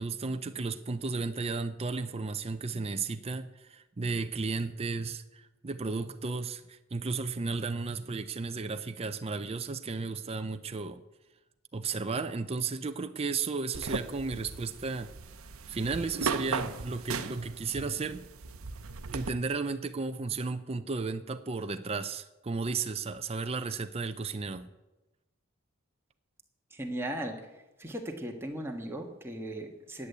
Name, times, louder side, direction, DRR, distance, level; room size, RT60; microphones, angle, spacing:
voice 1, 0.0-11.0 11.7-15.1 15.7-18.2 19.1-24.7, right 4 dB, 30° right, 9 dB, 0.5 m, -34 dB
sound 1, 13.7-19.3, right 4 dB, 85° right, 0.8 m, -37 dB
voice 2, 26.7-27.4 27.8-30.1, right 1 dB, 10° right, 2 dB, 1.6 m, -37 dB
11.0 x 8.4 x 8.0 m, 1.0 s
head